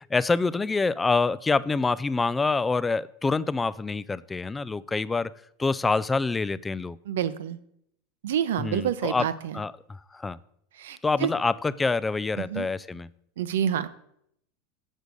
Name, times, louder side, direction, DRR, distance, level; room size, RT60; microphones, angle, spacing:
voice 1, 0.1-5.3 5.6-7.0 8.6-9.3 9.5-9.7 10.1-10.4 11.0-13.1, left 4 dB, 15° left, 0.3 m, -26 dB
voice 2, 7.1-7.6 8.2-9.6 10.8-11.3 12.4-12.7 13.4-13.9, right 9 dB, 85° right, 0.7 m, -28 dB
8.1 x 6.3 x 5.2 m
supercardioid pair, 130°, 0 cm